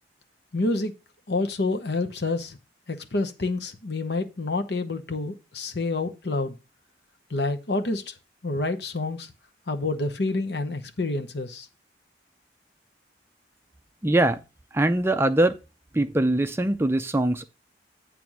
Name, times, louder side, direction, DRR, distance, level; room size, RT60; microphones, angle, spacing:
voice 1, 0.5-0.9 1.3-2.6 2.9-6.5 7.3-8.0 8.4-9.3 9.7-11.7, left 2 dB, 65° left, 0.9 m, -28 dB
voice 2, 14.0-14.4 14.7-15.6 15.9-17.5, right 1 dB, 15° right, 0.4 m, -22 dB
8.9 x 3.4 x 6.2 m
head